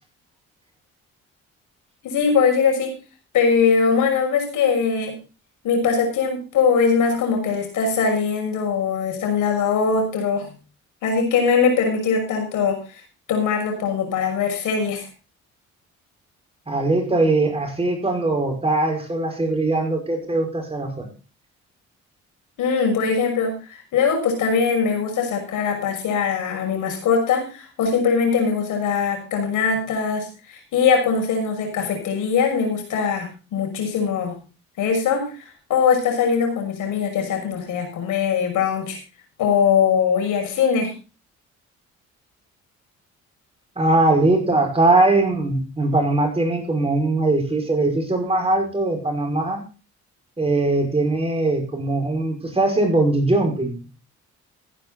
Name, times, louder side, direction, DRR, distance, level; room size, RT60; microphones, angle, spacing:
voice 1, 2.0-3.0 3.3-5.1 5.6-10.5 11.0-12.8 13.3-15.1 22.6-34.4 34.8-39.0 39.4-40.9, left 6 dB, 80° left, 3 dB, 6.3 m, -21 dB
voice 2, 16.7-21.1 43.8-49.6 50.4-53.9, right 2 dB, 20° right, 3 dB, 5.5 m, -21 dB
16.0 x 10.0 x 3.9 m, 0.33 s
cardioid pair, 90°, 30 cm